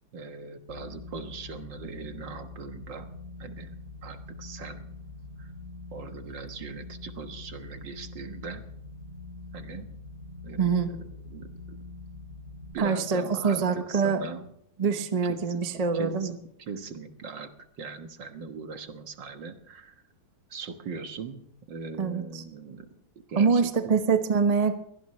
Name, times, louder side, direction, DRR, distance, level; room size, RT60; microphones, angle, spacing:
voice 1, 0.1-3.1 3.4-3.7 4.0-4.9 5.4-5.5 5.9-8.6 9.5-9.9 10.4-11.8 12.7-14.5 15.3-16.4 16.7-17.5 17.8-20.0 20.5-21.4 21.7-22.9 23.3-24.0, right 5 dB, 70° right, 6 dB, 2.1 m, -40 dB
sound 1, 0.7-12.7, left 3 dB, 45° left, 3.1 m, -44 dB
voice 2, 10.6-10.9 12.8-14.2 14.8-16.4 22.0-22.4 23.4-24.8, right 5 dB, 25° right, 7 dB, 1.0 m, -25 dB
23.0 x 17.5 x 3.2 m, 0.70 s
omnidirectional pair, 2.1 m